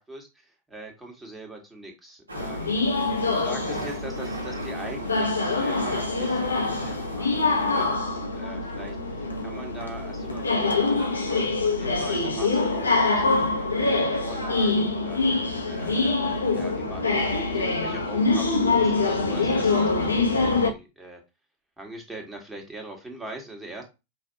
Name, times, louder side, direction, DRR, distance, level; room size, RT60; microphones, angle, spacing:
voice 1, 0.0-2.8 3.3-21.2 21.8-23.8, right 2 dB, 10° right, 1 dB, 1.6 m, -42 dB
sound 1, 2.3-20.7, left 3 dB, 80° left, 0.9 m, -25 dB
sound 2, 2.3-8.0, right 1 dB, 80° right, 1.1 m, -39 dB
5.5 x 2.6 x 2.8 m, 0.26 s
figure-of-eight pair, 90°, 0 cm